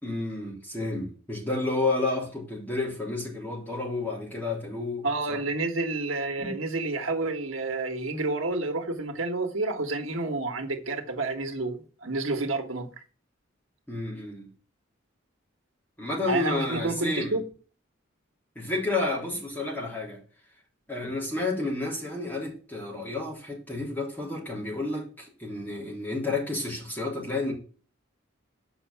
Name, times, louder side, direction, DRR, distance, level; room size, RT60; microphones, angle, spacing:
voice 1, 0.0-5.4 6.4-6.5 13.9-14.5 16.0-17.4 18.6-20.2 20.9-27.5, left 2 dB, 10° left, 3.5 m, -31 dB
voice 2, 5.0-13.0 16.3-17.4, right 2 dB, 90° right, 1.5 m, -29 dB
6.9 x 5.6 x 7.1 m
head